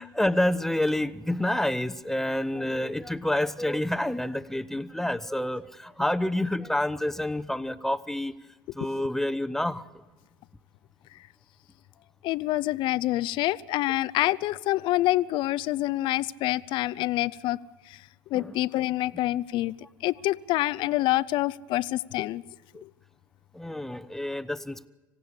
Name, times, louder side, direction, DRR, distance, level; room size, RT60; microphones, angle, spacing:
voice 1, 0.0-8.3 8.7-10.0 18.3-18.5 22.7-22.8 23.5-24.9, left 1 dB, 5° left, 13 dB, 1.0 m, -28 dB
voice 2, 12.2-17.6 17.9-19.7 20.0-22.4 22.8-22.9, left 16 dB, 50° left, 19 dB, 0.6 m, -27 dB
26.0 x 16.0 x 8.8 m, 1.2 s
hypercardioid pair, 70°, 10 cm